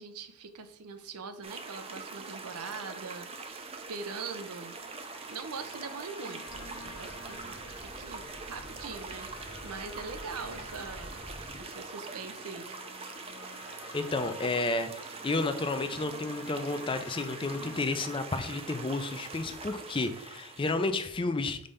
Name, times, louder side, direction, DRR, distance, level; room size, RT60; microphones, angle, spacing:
voice 1, 0.0-4.8 5.3-9.3 9.6-11.2 11.6-12.7, right 5 dB, 85° right, 8 dB, 0.7 m, -42 dB
sound 1, 1.4-20.9, right 4 dB, 25° right, 0.6 m, -43 dB
sound 2, 4.3-17.8, left 3 dB, 65° left, 0.8 m, -51 dB
sound 3, 6.5-11.6, equal, 5° left, 0.8 m, -49 dB
voice 2, 13.9-21.6, left 3 dB, 25° left, 9 dB, 0.4 m, -31 dB
5.2 x 3.3 x 5.4 m, 0.67 s
head